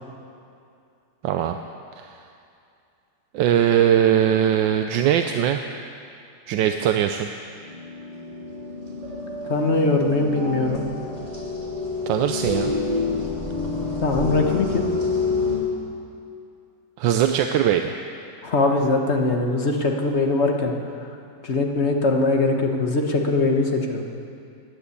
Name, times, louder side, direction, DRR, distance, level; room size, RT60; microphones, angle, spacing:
voice 1, 1.2-1.6 2.0-2.1 3.3-5.6 6.5-7.3 12.1-12.7 17.0-18.0, right 10 dB, 85° right, 6 dB, 1.3 m, -20 dB
sound 1, 7.5-15.6, left 3 dB, 20° right, 2.9 m, -28 dB
voice 2, 9.5-10.8 14.0-14.8 18.4-20.7 21.4-24.0, left 3 dB, 40° left, 2 dB, 1.4 m, -21 dB
15.0 x 10.5 x 8.5 m, 2.5 s
omnidirectional pair, 2.0 m